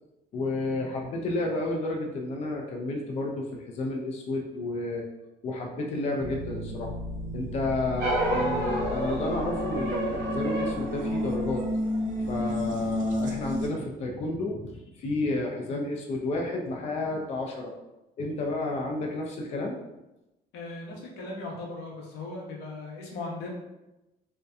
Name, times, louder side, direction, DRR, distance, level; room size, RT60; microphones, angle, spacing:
voice 1, 0.3-5.1 5.4-6.9 7.3-11.6 12.3-17.7 18.2-19.8, left 2 dB, 40° left, 0 dB, 0.4 m, -31 dB
sound 1, 6.2-13.7, left 1 dB, 50° right, 0.4 m, -32 dB
sound 2, 8.0-12.6, right 1 dB, 80° right, 0.8 m, -31 dB
voice 2, 20.5-23.5, left 2 dB, 85° left, -2 dB, 0.7 m, -38 dB
2.6 x 2.1 x 2.3 m, 0.97 s
cardioid pair, 110°, 17 cm